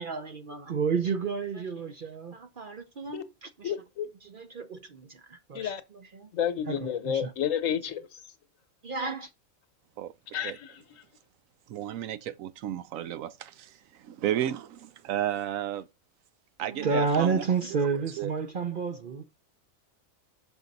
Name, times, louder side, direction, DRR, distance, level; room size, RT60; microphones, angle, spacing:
voice 1, 0.0-3.7 4.2-6.3 6.7-7.3 8.8-9.3 16.6-19.2, right 5 dB, 50° right, 0.6 m, -31 dB
voice 2, 3.6-4.1 5.5-5.8 6.3-8.2 10.3-10.8, left 9 dB, 70° left, 1.2 m, -30 dB
voice 3, 11.7-15.9 16.6-17.4 18.2-18.3, right 11 dB, 80° right, 1.0 m, -33 dB
6.3 x 5.3 x 4.0 m
omnidirectional pair, 1.4 m